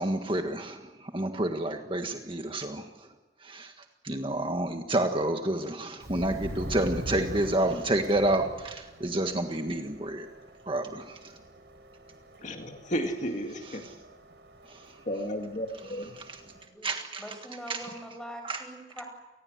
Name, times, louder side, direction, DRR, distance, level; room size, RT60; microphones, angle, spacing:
voice 1, 0.0-2.9 3.4-3.7 4.0-10.3 10.7-11.2 13.6-13.9 16.1-16.4 16.8-17.4 17.7-17.9 18.4-18.6, right 1 dB, 30° right, 5 dB, 1.6 m, -29 dB
Subway metro underground, 6.0-16.6, right 1 dB, 75° right, 4.2 m, -44 dB
voice 2, 12.4-13.8 15.1-16.2, equal, 45° left, 4 dB, 2.1 m, -33 dB
voice 3, 16.4-16.9 17.2-19.0, equal, 5° left, 4 dB, 5.8 m, -43 dB
28.0 x 20.0 x 8.0 m, 1.1 s
head